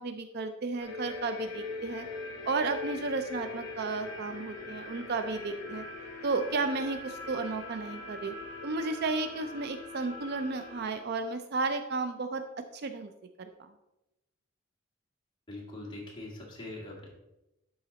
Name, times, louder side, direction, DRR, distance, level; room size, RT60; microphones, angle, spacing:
voice 1, 0.0-2.1 2.5-5.8 6.2-8.3 8.6-12.4 12.7-13.1 13.4-13.7, right 3 dB, 50° right, 8 dB, 0.4 m, -33 dB
sound 1, 0.8-10.9, left 3 dB, 55° left, 1.8 m, -41 dB
voice 2, 15.5-17.1, left 2 dB, 20° left, -3 dB, 1.8 m, -42 dB
11.5 x 3.9 x 4.0 m, 0.94 s
head